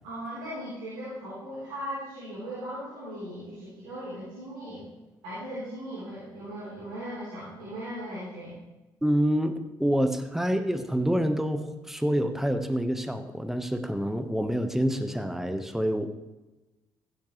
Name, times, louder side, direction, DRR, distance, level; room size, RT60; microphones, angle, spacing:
voice 1, 0.0-4.9 5.2-8.5, equal, 75° right, -9 dB, 4.0 m, -38 dB
voice 2, 9.0-16.1, equal, 5° right, 8 dB, 1.3 m, -27 dB
15.5 x 11.0 x 3.2 m, 1.1 s
figure-of-eight pair, 40°, 11 cm